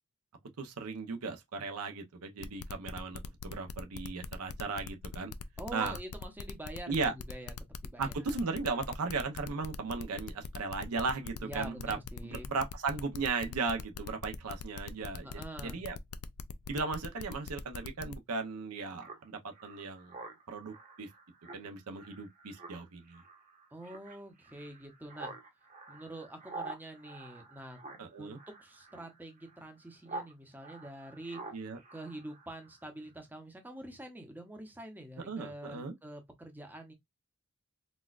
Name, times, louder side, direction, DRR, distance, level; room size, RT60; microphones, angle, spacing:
voice 1, 0.6-5.3 5.7-6.0 6.9-7.1 8.0-12.0 12.3-16.0 16.7-20.1 20.5-21.1 21.5-23.2 28.0-28.4 31.5-31.8 35.3-35.9, right 4 dB, 80° right, 0.6 m, -36 dB
sound 1, 2.4-18.2, left 7 dB, 65° left, 0.4 m, -43 dB
voice 2, 5.6-7.5 7.8-8.1 11.4-12.5 15.2-15.8 23.7-25.3 25.9-27.8 28.2-31.4 31.9-36.9, right 1 dB, 10° right, 0.7 m, -46 dB
Speech synthesizer, 19.0-30.3 30.6-32.8, right 3 dB, 35° right, 0.9 m, -48 dB
4.1 x 2.3 x 2.4 m
head